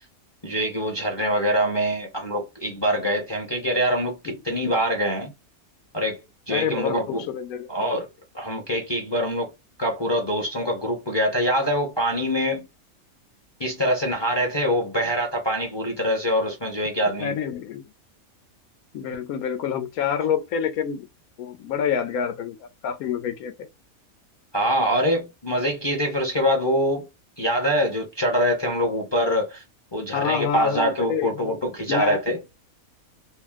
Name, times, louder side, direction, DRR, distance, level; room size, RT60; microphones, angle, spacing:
voice 1, 0.4-5.3 5.9-7.2 7.7-8.1 8.3-9.5 9.8-12.7 13.6-17.4 24.5-27.1 27.4-29.6 29.9-32.4, equal, 30° left, 0.5 m, -24 dB
voice 2, 6.5-7.7 17.2-17.9 18.9-21.1 21.4-23.5 30.1-31.5 31.9-32.2, left 8 dB, 90° left, 1.1 m, -27 dB
2.7 x 2.0 x 3.4 m
omnidirectional pair, 1.5 m